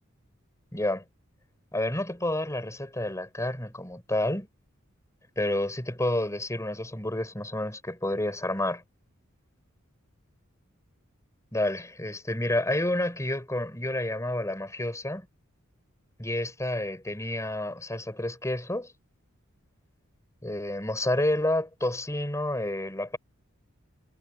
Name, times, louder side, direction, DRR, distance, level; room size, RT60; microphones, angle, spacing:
voice 1, 0.7-1.0 1.7-4.5 5.4-8.8 11.5-15.3 16.2-18.9 20.4-23.2, left 1 dB, 15° left, 5.7 m, -29 dB
head